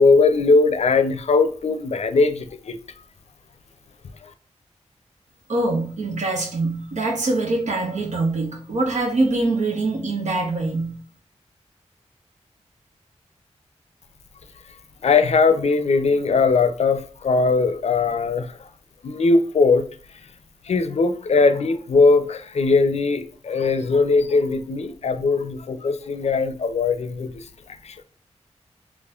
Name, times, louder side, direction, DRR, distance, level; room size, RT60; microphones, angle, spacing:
voice 1, 0.0-2.8 15.0-18.7 19.0-19.9 20.7-27.4 27.8-28.0, left 4 dB, 65° left, 0.5 m, -19 dB
voice 2, 5.5-11.0, right 2 dB, 85° right, 1.0 m, -24 dB
4.2 x 2.9 x 2.4 m
wide cardioid pair, 80°, 12 cm